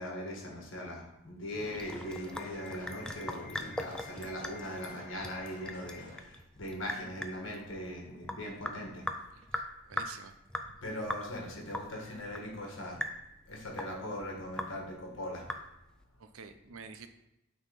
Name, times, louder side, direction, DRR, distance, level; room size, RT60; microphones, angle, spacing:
voice 1, 0.0-9.1 10.8-13.0 13.5-15.4, left 1 dB, 60° left, -1 dB, 1.7 m, -40 dB
Sink (filling or washing) / Drip, 1.6-16.0, left 1 dB, 5° left, 0.3 m, -41 dB
sound 1, 1.8-6.2, left 3 dB, 40° left, 1.3 m, -50 dB
voice 2, 9.3-10.3 16.2-17.1, right 5 dB, 80° right, 9 dB, 0.6 m, -49 dB
8.9 x 3.8 x 4.1 m, 0.86 s
head